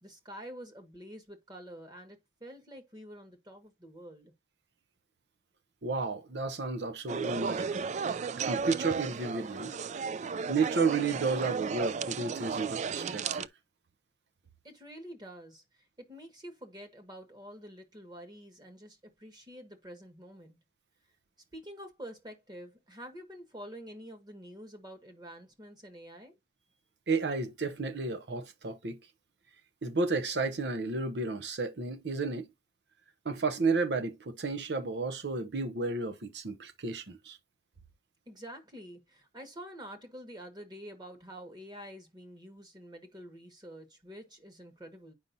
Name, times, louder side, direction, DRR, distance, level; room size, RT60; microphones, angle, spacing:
voice 1, 0.0-4.3 14.6-20.6 21.5-26.4 38.3-45.1, equal, 25° right, 1.6 m, -48 dB
voice 2, 5.8-7.9 8.4-9.7 10.5-13.5 27.1-29.0 29.8-32.5 33.2-37.4, right 4 dB, 70° right, 0.7 m, -32 dB
sound 1, 7.1-13.5, right 5 dB, 40° right, 0.3 m, -34 dB
8.7 x 5.5 x 2.6 m
head